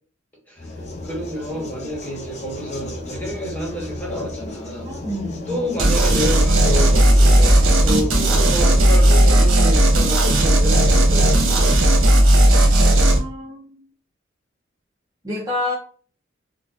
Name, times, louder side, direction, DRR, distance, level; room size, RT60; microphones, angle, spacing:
voice 1, 0.5-4.9 5.5-11.9, equal, 10° left, -3 dB, 1.2 m, -29 dB
sound 1, 0.6-9.0, left 2 dB, 35° left, 0.6 m, -34 dB
voice 2, 4.8-5.6 13.1-13.8 15.2-15.7, left 1 dB, 15° right, -7 dB, 0.7 m, -28 dB
sound 2, 5.8-13.2, right 1 dB, 80° right, 0.9 m, -15 dB
4.1 x 2.2 x 2.4 m, 0.41 s
head